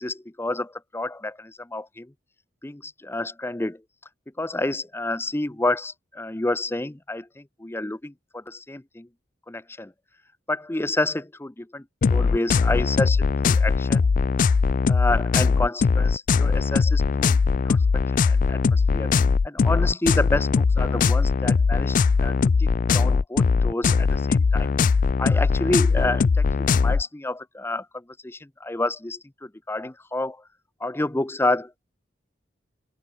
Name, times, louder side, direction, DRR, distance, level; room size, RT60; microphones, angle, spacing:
voice 1, 0.0-2.1 2.6-3.8 4.4-9.1 9.5-9.9 10.5-11.8 12.1-14.1 14.9-17.4 17.6-17.8 18.2-19.1 19.4-22.0 22.2-22.7 22.9-24.7 25.2-30.4 30.8-31.7, left 2 dB, 15° left, 0.6 m, -29 dB
sound 1, 12.0-27.0, left 5 dB, 45° left, 0.3 m, -20 dB
open air
head